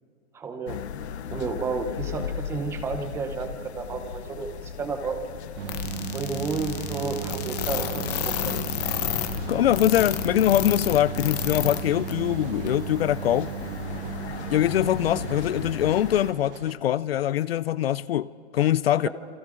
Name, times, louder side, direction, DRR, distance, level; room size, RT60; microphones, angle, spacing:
voice 1, 0.3-0.8 1.3-5.2 6.1-8.5, right 4 dB, 10° right, 0.7 m, -31 dB
sound 1, 0.7-16.3, left 8 dB, 80° left, 0.9 m, -37 dB
sound 2, 5.6-16.7, right 11 dB, 55° right, 0.8 m, -36 dB
sound 3, 5.7-11.8 12.1-12.2 12.7-12.8, left 11 dB, 40° left, 1.3 m, -30 dB
voice 2, 9.5-13.5 14.5-19.1, left 12 dB, 65° left, 0.5 m, -23 dB
28.5 x 26.0 x 3.8 m
hypercardioid pair, 160°, 33 cm